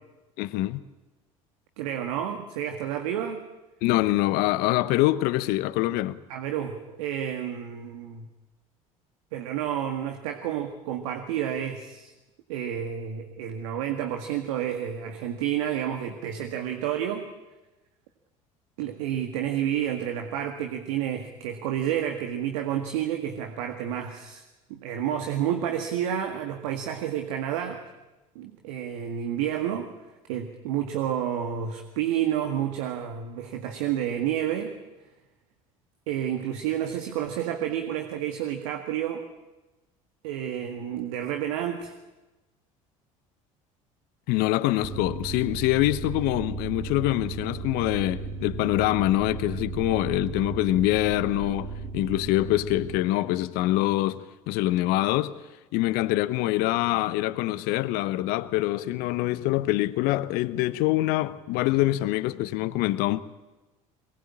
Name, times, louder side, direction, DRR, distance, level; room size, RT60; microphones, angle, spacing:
voice 1, 0.4-0.8 3.8-6.2 44.3-55.4 55.7-63.2, left 16 dB, 65° left, 1.1 m, -25 dB
voice 2, 1.8-3.5 6.3-8.3 9.3-12.1 12.5-17.3 18.8-24.4 24.7-27.8 28.4-29.9 30.3-34.8 36.1-39.2 40.2-41.9, right 10 dB, 70° right, 1.9 m, -30 dB
sound 1, 44.8-53.0, right 4 dB, 50° right, 1.7 m, -35 dB
22.5 x 20.0 x 8.8 m
hypercardioid pair, 65°, 17 cm